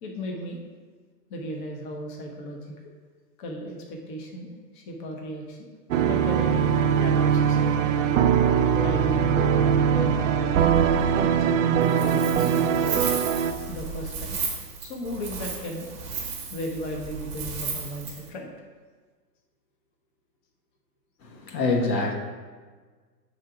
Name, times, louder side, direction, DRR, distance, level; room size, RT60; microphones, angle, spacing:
voice 1, 0.0-0.6 1.3-2.7 3.4-5.6 6.0-6.7 7.0-8.1 8.7-9.3 9.9-10.7 11.2-13.2 13.7-14.4 14.8-15.9 16.5-18.5, equal, 30° left, 1 dB, 0.7 m, -36 dB
sound 1, 5.9-13.5, right 7 dB, 50° right, 0.5 m, -21 dB
Wind, 11.8-18.3, right 5 dB, 15° right, 0.9 m, -34 dB
voice 2, 21.2-22.1, left 3 dB, 90° left, 1 dB, 1.4 m, -25 dB
7.5 x 3.9 x 4.6 m, 1.5 s
hypercardioid pair, 160°, 50 cm